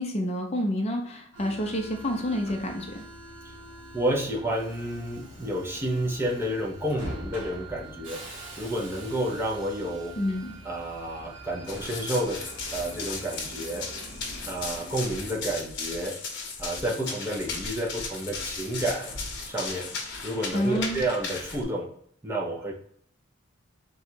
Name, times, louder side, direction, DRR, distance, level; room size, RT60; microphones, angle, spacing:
voice 1, 0.0-3.0 10.2-10.5 20.5-21.0, equal, 30° left, 2 dB, 0.5 m, -29 dB
Subway metro underground, 1.3-15.7, right 1 dB, 65° right, 1.1 m, -44 dB
voice 2, 3.9-8.2 8.6-10.2 10.6-12.4 12.7-13.9 14.4-16.2 16.6-19.9 20.2-21.9 22.2-22.7, right 1 dB, 10° right, -2 dB, 0.6 m, -30 dB
Run, 11.7-21.6, left 4 dB, 55° left, 0.9 m, -36 dB
3.8 x 2.3 x 4.4 m, 0.65 s
head